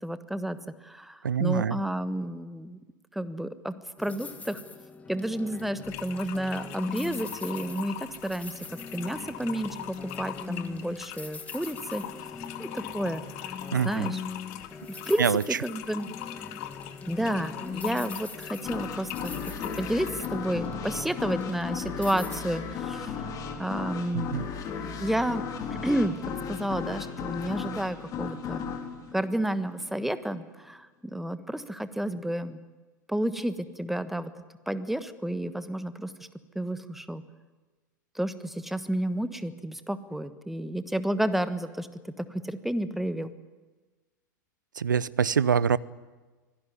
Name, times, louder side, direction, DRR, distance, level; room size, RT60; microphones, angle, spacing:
voice 1, 0.0-0.6 0.8-2.8 3.1-4.6 5.1-12.1 12.6-13.5 13.8-14.2 15.1-15.2 15.6-16.1 17.1-19.3 19.8-23.1 23.6-24.4 25.0-25.4 25.7-28.6 29.1-32.6 33.1-34.3 34.7-36.1 36.5-37.2 38.1-43.3, right 1 dB, ahead, 12 dB, 1.3 m, -31 dB
voice 2, 1.2-1.8 13.7-14.1 15.2-15.6 24.1-24.5 44.7-45.8, right 7 dB, 75° right, 21 dB, 0.7 m, -25 dB
sound 1, 4.0-22.4, left 5 dB, 15° left, 1.9 m, -41 dB
sound 2, 5.8-20.3, left 13 dB, 50° left, 1.7 m, -41 dB
sound 3, 18.6-30.1, left 6 dB, 35° left, 3.9 m, -35 dB
25.0 x 18.0 x 9.7 m, 1.3 s
figure-of-eight pair, 90°, 10 cm